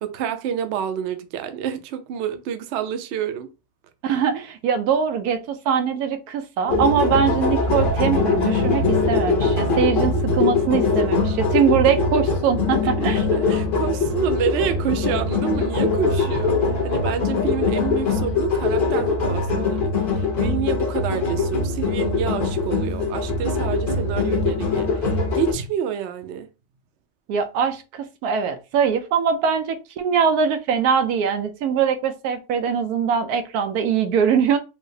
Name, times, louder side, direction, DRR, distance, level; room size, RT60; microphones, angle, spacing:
voice 1, 0.0-3.5 12.8-16.6 16.8-26.5, right 9 dB, 65° right, 0.7 m, -28 dB
voice 2, 4.0-13.3 27.3-34.6, right 7 dB, 90° right, 1.1 m, -22 dB
sound 1, 6.7-25.5, left 4 dB, 40° left, 0.9 m, -22 dB
4.7 x 2.0 x 2.6 m
omnidirectional pair, 1.6 m